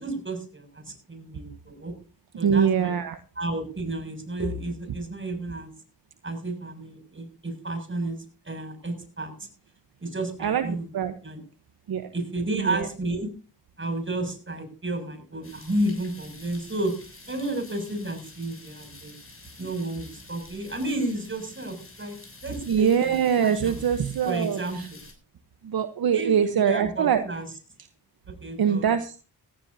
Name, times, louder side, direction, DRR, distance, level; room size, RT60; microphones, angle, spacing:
voice 1, 0.0-1.9 2.4-2.9 3.4-5.7 6.2-8.2 8.5-9.5 10.0-10.9 11.2-11.4 12.1-13.3 13.8-16.9 17.3-19.1 19.6-22.2 22.4-23.8 24.3-25.0 26.1-27.5 28.3-28.9, right 1 dB, 30° right, 5 dB, 7.0 m, -32 dB
voice 2, 2.4-3.2 10.4-11.1 11.9-12.1 12.5-12.9 22.7-24.9 25.6-27.3 28.6-29.2, right 8 dB, 60° right, 10 dB, 1.1 m, -23 dB
sound 1, 15.4-25.1, left 2 dB, 30° left, 7.5 m, -48 dB
17.5 x 16.0 x 2.8 m, 0.35 s
cardioid pair, 55°, 40 cm